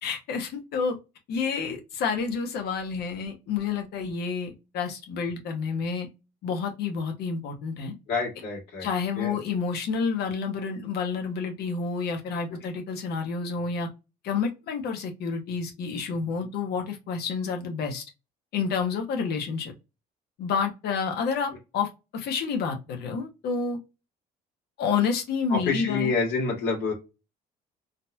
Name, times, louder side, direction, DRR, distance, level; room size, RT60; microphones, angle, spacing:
voice 1, 0.0-1.0 1.3-6.1 6.4-7.9 8.8-13.9 14.2-18.0 18.5-19.7 20.4-23.8 24.8-26.1, left 5 dB, 70° left, 1.0 m, -29 dB
voice 2, 8.1-8.9 9.2-9.4 25.5-26.9, left 4 dB, 90° left, 1.8 m, -27 dB
3.9 x 2.8 x 2.2 m
cardioid pair, 110°, 17 cm